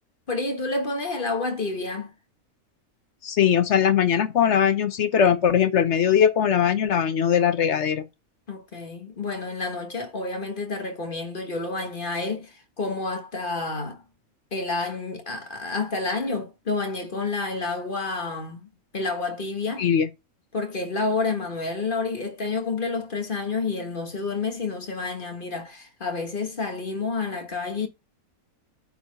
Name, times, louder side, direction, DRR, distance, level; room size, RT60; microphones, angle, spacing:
voice 1, 0.3-2.1 8.5-14.0 14.5-19.9 20.5-27.9, left 3 dB, 35° left, 1.6 m, -29 dB
voice 2, 3.2-8.0 19.8-20.1, left 8 dB, 55° left, 1.1 m, -20 dB
9.5 x 4.4 x 5.2 m
omnidirectional pair, 1.5 m